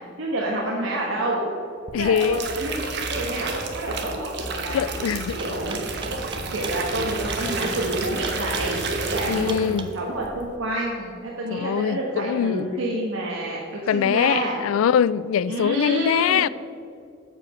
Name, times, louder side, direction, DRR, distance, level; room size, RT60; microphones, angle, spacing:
voice 1, 0.0-1.4 1.9-4.8 5.3-5.8 6.5-14.6 15.5-16.5, right 1 dB, 75° right, 1.3 m, -28 dB
voice 2, 1.9-2.4 4.7-5.4 9.3-9.9 11.5-12.7 13.9-16.5, left 8 dB, 85° left, 0.3 m, -22 dB
sound 1, 1.9-9.9 10.2-10.5, right 3 dB, 55° right, 1.0 m, -30 dB
sound 2, 5.4-9.9, right 5 dB, 25° right, 0.5 m, -37 dB
7.7 x 7.5 x 6.0 m
head